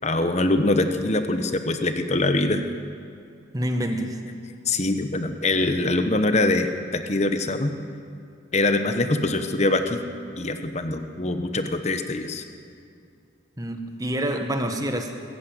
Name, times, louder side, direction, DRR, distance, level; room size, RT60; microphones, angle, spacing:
voice 1, 0.0-2.6 4.7-7.7 8.5-10.0 10.4-12.4, left 2 dB, 35° left, 8 dB, 1.1 m, -23 dB
voice 2, 3.5-4.2 13.6-15.1, right 1 dB, 20° right, 5 dB, 1.6 m, -27 dB
20.0 x 15.0 x 9.2 m, 2.4 s
head